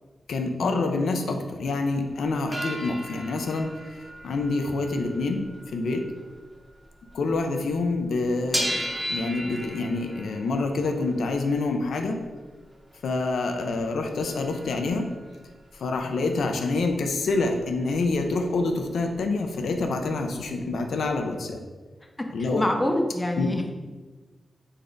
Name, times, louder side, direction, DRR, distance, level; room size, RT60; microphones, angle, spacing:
voice 1, 0.3-3.7 4.2-6.0 7.1-12.2 13.0-15.1 15.8-21.6 22.3-22.6 23.4-23.5, left 3 dB, 85° left, 4 dB, 0.5 m, -27 dB
sound 1, 2.4-7.4 7.7-13.3 13.7-13.8 14.0-17.9 18.2-19.2 19.5-19.6 19.8-20.8 21.2-21.3, equal, 20° right, 0.8 m, -37 dB
voice 2, 22.4-23.7, left 1 dB, 20° left, 3 dB, 0.5 m, -26 dB
4.0 x 3.3 x 3.8 m, 1.3 s
wide cardioid pair, 90°, 0 cm